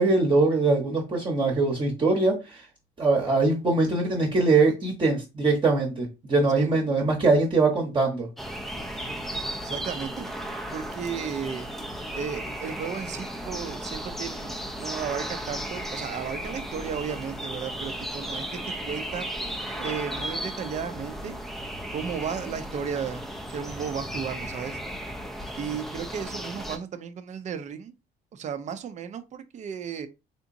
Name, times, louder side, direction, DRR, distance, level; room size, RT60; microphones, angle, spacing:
voice 1, 0.0-2.6 3.0-8.3, right 3 dB, 30° right, 1.0 m, -22 dB
sound 1, 8.4-26.8, equal, ahead, 0.5 m, -35 dB
voice 2, 9.6-10.3 10.7-11.7 12.1-18.6 18.9-19.3 19.8-21.4 21.9-23.2 23.5-24.8 25.6-27.9 28.3-30.1, right 7 dB, 45° right, 0.6 m, -34 dB
3.5 x 2.8 x 2.6 m
cardioid pair, 110°, 17 cm